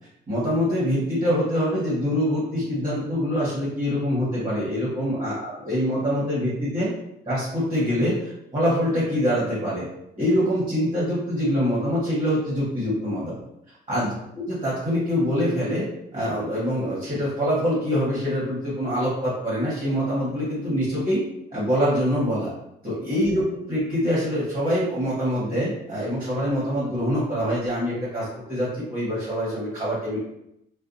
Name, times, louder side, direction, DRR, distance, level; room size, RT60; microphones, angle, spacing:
voice 1, 0.3-6.9 7.3-9.8 10.2-13.3 13.9-15.9 16.1-21.2 21.5-22.5 22.8-30.2, equal, 30° right, -8 dB, 1.2 m, -24 dB
2.5 x 2.3 x 2.5 m, 0.81 s
cardioid pair, 90°, 20 cm